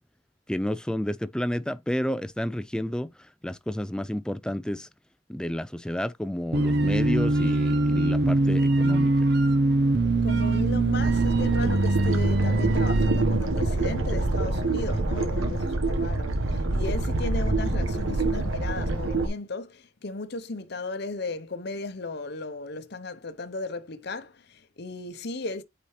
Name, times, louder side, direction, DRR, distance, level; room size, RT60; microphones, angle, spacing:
voice 1, 0.5-3.1 3.4-4.9 5.3-9.3, equal, 5° left, 0.3 m, -30 dB
sound 1, 6.5-13.4, right 2 dB, 55° right, 0.9 m, -22 dB
voice 2, 10.2-25.6, left 3 dB, 55° left, 0.8 m, -36 dB
sound 2, 10.9-19.3, right 2 dB, 85° right, 1.3 m, -26 dB
8.6 x 4.2 x 3.2 m
head